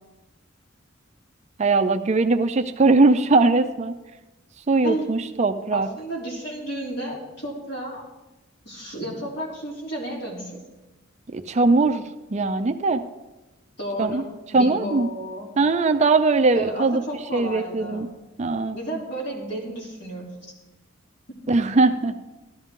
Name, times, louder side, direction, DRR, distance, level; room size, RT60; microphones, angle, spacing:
voice 1, 1.6-3.9 4.7-5.9 11.3-12.0 12.3-13.0 14.0-14.2 14.5-15.1 15.6-17.0 17.3-18.1 18.4-18.8 21.5-22.3, right 3 dB, 35° right, 8 dB, 0.5 m, -20 dB
voice 2, 5.7-8.0 8.6-10.6 13.8-14.3 14.5-15.5 16.5-18.0 18.7-20.3, right 1 dB, 60° left, -3 dB, 3.2 m, -32 dB
13.5 x 12.0 x 3.7 m, 1.1 s
head